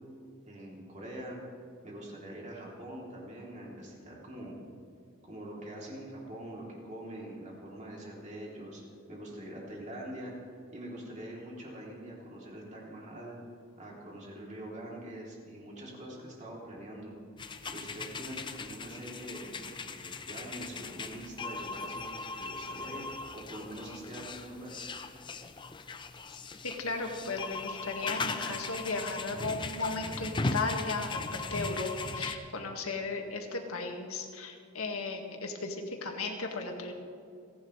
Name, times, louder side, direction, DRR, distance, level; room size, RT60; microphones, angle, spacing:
voice 1, 0.4-1.4 1.8-4.7 5.2-8.8 9.1-10.3 10.7-13.4 13.8-17.1 17.7-24.8, right 1 dB, 35° right, -3 dB, 3.2 m, -44 dB
sound 1, 17.4-32.4, left 3 dB, 20° left, 0.6 m, -38 dB
voice 2, 26.6-36.9, left 3 dB, 85° left, 3 dB, 1.9 m, -35 dB
29.5 x 11.0 x 3.3 m, 2.3 s
head